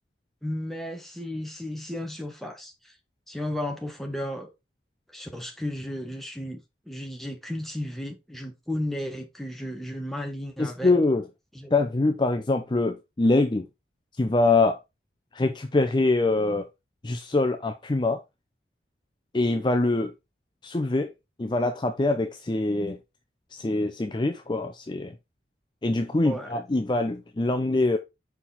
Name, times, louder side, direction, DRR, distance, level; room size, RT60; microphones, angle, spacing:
voice 1, 0.4-2.9 3.3-4.5 5.1-6.6 6.9-10.9 11.5-11.7 26.2-26.5, left 1 dB, ahead, 1.1 m, -34 dB
voice 2, 10.6-11.3 11.7-13.7 14.2-14.8 15.3-16.7 17.0-18.2 19.3-20.1 20.6-21.1 21.4-23.0 23.5-25.2 25.8-28.0, left 2 dB, 25° left, 0.5 m, -24 dB
5.7 x 4.7 x 3.9 m
head